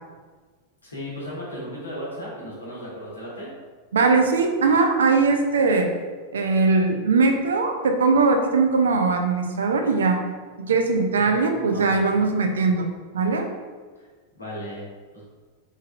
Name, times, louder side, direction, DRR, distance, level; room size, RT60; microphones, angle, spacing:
voice 1, 0.8-3.5 11.2-12.2 14.0-14.1 14.3-14.8 15.1-15.2, equal, 80° left, -6 dB, 1.1 m, -36 dB
voice 2, 3.9-5.9 6.3-10.2 10.6-12.9 13.1-13.5, right 4 dB, 65° right, 4 dB, 0.4 m, -20 dB
3.3 x 3.2 x 2.3 m, 1.4 s
figure-of-eight pair, 90°, 0 cm